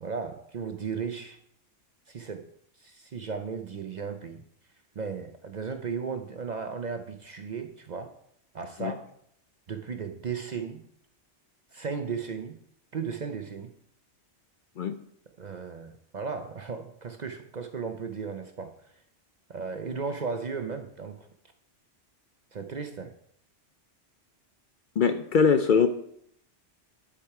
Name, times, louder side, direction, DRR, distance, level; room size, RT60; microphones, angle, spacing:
voice 1, 0.0-1.4 2.1-2.5 2.8-4.4 5.0-8.1 8.5-9.1 9.7-10.8 11.7-12.6 12.9-13.7 15.4-18.7 19.5-21.3 22.5-23.1, right 5 dB, 50° right, 7 dB, 0.6 m, -35 dB
voice 2, 25.0-25.9, left 6 dB, 55° left, 9 dB, 0.6 m, -22 dB
10.5 x 4.8 x 4.7 m, 0.71 s
omnidirectional pair, 1.2 m